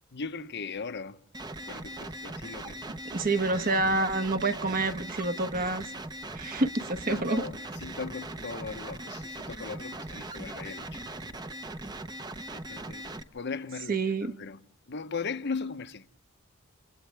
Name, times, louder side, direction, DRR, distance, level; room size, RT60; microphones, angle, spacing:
voice 1, 0.1-1.2 1.7-3.0 7.1-11.2 12.5-14.6 14.9-16.1, left 4 dB, 55° left, 0.9 m, -38 dB
sound 1, 1.3-13.2, right 1 dB, 20° right, 0.8 m, -40 dB
voice 2, 3.1-5.9 6.3-7.4 13.9-14.3, right 2 dB, 45° right, 1.3 m, -28 dB
29.5 x 29.0 x 3.4 m
head